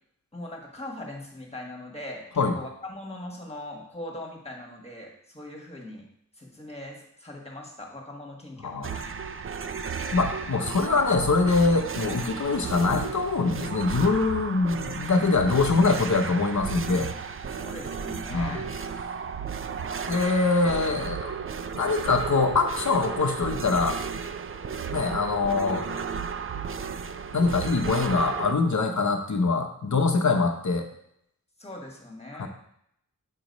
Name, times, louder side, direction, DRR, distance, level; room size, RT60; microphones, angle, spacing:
voice 1, 0.3-6.1 6.4-9.0 17.4-18.6 31.6-32.5, left 1 dB, 20° left, -1 dB, 1.5 m, -40 dB
sound 1, 8.8-28.5, right 6 dB, 40° right, 0.4 m, -34 dB
voice 2, 10.1-17.1 18.3-18.6 20.1-21.4 21.7-24.0 24.9-25.9 27.3-30.9 32.3-32.5, left 3 dB, 60° left, 5 dB, 0.8 m, -24 dB
7.6 x 3.1 x 5.2 m, 0.73 s
wide cardioid pair, 80°, 33 cm